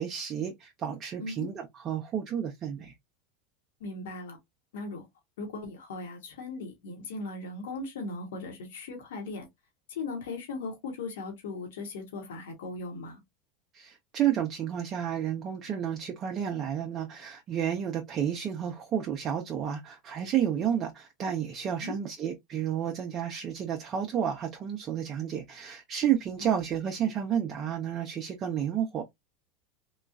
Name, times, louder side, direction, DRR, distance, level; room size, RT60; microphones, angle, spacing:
voice 1, 0.0-2.9 13.7-29.0, right 9 dB, 35° right, 0.6 m, -31 dB
voice 2, 3.8-4.4 4.7-5.0 5.4-9.5 9.9-13.2 21.8-22.0 26.4-26.5, left 3 dB, 85° left, 1.1 m, -38 dB
3.0 x 2.3 x 2.4 m
supercardioid pair, 120°, 0 cm